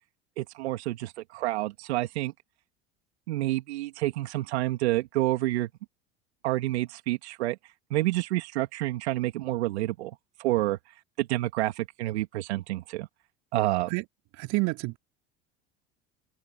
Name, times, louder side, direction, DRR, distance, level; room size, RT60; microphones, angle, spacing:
voice 1, 0.4-2.3 3.3-5.7 6.4-7.6 7.9-10.1 10.4-10.8 11.2-13.1 13.5-13.9, right 17 dB, 75° right, 2.6 m, -28 dB
voice 2, 14.4-15.0, right 25 dB, 60° right, 3.0 m, -28 dB
hypercardioid pair, 75°, 33 cm